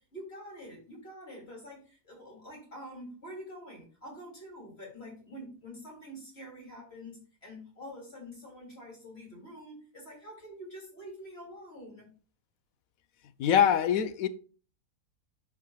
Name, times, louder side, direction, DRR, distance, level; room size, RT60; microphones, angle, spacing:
voice 1, 0.0-12.1, equal, 45° left, 3.1 m, -46 dB
voice 2, 13.4-14.3, left 9 dB, 70° left, 1.1 m, -23 dB
12.5 x 4.9 x 2.3 m
omnidirectional pair, 1.6 m